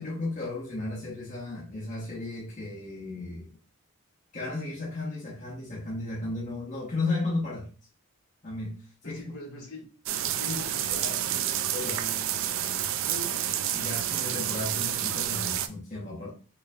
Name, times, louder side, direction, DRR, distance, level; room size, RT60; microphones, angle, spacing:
voice 1, 0.0-3.5 4.3-7.7 8.4-9.2 10.5-10.6 10.9-12.0 13.7-16.3, left 2 dB, 35° left, 1.0 m, -34 dB
voice 2, 9.0-9.9 10.2-11.5 11.8-12.3 13.0-13.5, left 1 dB, 65° left, 1.4 m, -43 dB
sound 1, 10.1-15.7, right 11 dB, 60° right, 0.3 m, -29 dB
4.6 x 3.1 x 2.4 m
head